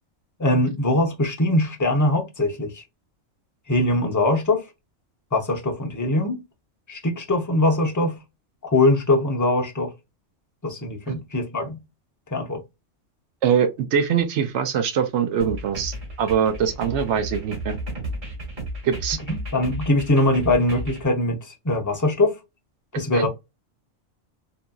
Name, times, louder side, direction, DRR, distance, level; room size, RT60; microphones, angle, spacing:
voice 1, 0.4-2.8 3.7-4.6 5.3-6.4 6.9-8.2 8.6-9.9 10.6-11.8 12.3-12.6 19.3-21.4 21.6-22.4 23.0-23.3, left 1 dB, 25° left, 0.4 m, -22 dB
voice 2, 13.4-17.8 18.8-19.2 23.1-23.3, right 7 dB, 70° right, 0.9 m, -23 dB
sound 1, 15.4-21.0, right 1 dB, 40° right, 1.2 m, -33 dB
2.8 x 2.5 x 2.2 m
omnidirectional pair, 1.3 m